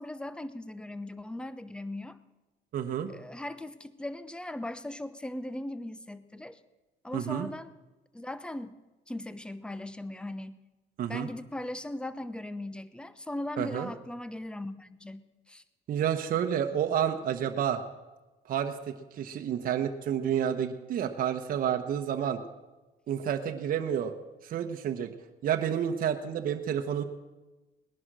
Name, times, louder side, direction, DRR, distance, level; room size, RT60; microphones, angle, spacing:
voice 1, 0.0-2.2 3.1-6.6 7.0-7.7 8.1-8.8 9.1-10.6 11.1-15.6, left 1 dB, 5° left, 14 dB, 0.8 m, -39 dB
voice 2, 2.7-3.1 7.1-7.5 11.0-11.3 13.6-13.9 15.9-17.8 18.5-18.8 19.1-22.4 23.1-24.1 24.4-25.1 25.4-27.0, right 9 dB, 55° right, 5 dB, 1.1 m, -29 dB
19.0 x 10.5 x 6.2 m, 1.1 s
cardioid pair, 110°, 17 cm